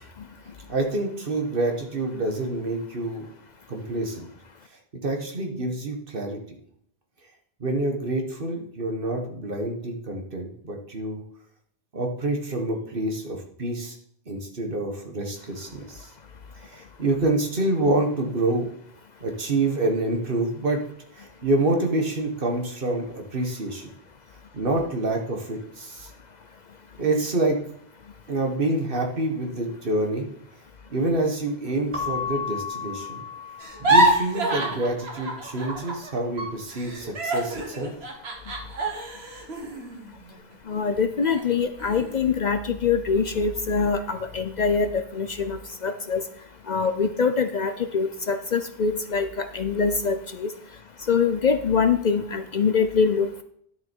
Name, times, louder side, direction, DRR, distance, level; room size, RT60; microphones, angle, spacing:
voice 1, 0.7-3.3 3.7-4.3 5.0-6.4 7.6-11.2 11.9-14.0 14.3-16.1 16.6-18.7 19.2-20.8 21.1-23.9 24.5-26.1 27.0-27.6 28.3-30.3 30.9-33.2 33.8-37.9, right 2 dB, 60° right, 3 dB, 1.7 m, -27 dB
Keyboard (musical) / Bell, 31.9-34.4, left 7 dB, 30° right, 1.5 m, -33 dB
sound 1, 33.6-36.1 36.4-40.8 41.2-41.4 41.8-42.3, right 1 dB, 85° right, 1.8 m, -26 dB
voice 2, 40.7-46.2 46.7-50.5 51.1-53.4, left 5 dB, 50° left, 9 dB, 0.6 m, -24 dB
10.5 x 6.6 x 4.5 m, 0.67 s
omnidirectional pair, 1.0 m